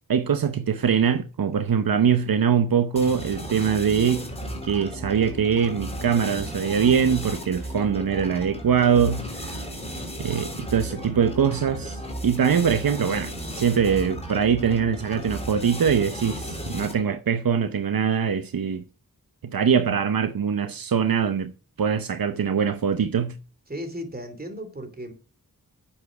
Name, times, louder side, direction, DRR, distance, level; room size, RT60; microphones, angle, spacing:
voice 1, 0.1-4.3 4.6-9.5 10.2-18.8 19.4-21.5 21.8-23.3, right 7 dB, 75° right, 0.8 m, -23 dB
sound 1, 3.0-17.2, equal, 15° left, 3.5 m, -35 dB
Bass guitar, 8.9-12.7, right 5 dB, 60° left, 5.9 m, -50 dB
voice 2, 23.7-25.1, equal, 25° right, 2.8 m, -35 dB
9.8 x 7.5 x 4.9 m
wide cardioid pair, 75°, 35 cm